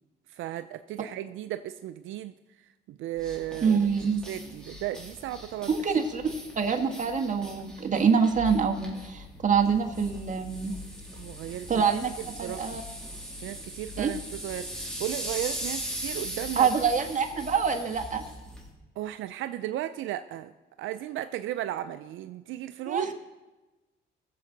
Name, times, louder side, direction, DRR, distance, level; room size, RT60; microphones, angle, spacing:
voice 1, 0.3-2.3 2.6-3.9 4.3-5.7 11.2-11.8 12.2-12.8 13.4-16.7 19.0-20.5 20.8-23.1, right 13 dB, 80° right, 11 dB, 0.5 m, -35 dB
sound 1, 3.2-18.7, equal, 5° left, 3.3 m, -40 dB
voice 2, 3.6-4.2 5.7-6.2 6.5-10.7 11.7-12.1 12.4-12.8 14.0-14.1 16.5-18.2 22.9-23.1, right 6 dB, 40° right, 4 dB, 1.6 m, -25 dB
19.5 x 7.5 x 3.9 m, 1.1 s
cardioid pair, 90°, 20 cm